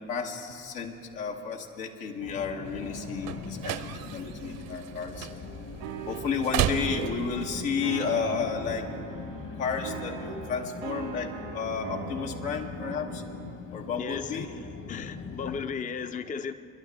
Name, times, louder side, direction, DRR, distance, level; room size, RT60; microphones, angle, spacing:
voice 1, 0.1-5.3 6.0-8.9 9.6-13.2 13.7-14.5, left 5 dB, 80° left, 1 dB, 1.4 m, -32 dB
sound 1, 2.2-15.7, left 5 dB, 45° left, 1.4 m, -42 dB
sound 2, 2.6-7.6, right 10 dB, 55° right, 0.8 m, -34 dB
sound 3, 5.8-13.6, right 8 dB, 85° right, 1.6 m, -41 dB
voice 2, 14.0-14.5 14.9-16.5, left 6 dB, 20° left, 10 dB, 0.5 m, -35 dB
25.0 x 11.5 x 3.5 m, 2.5 s
hypercardioid pair, 60°, 40 cm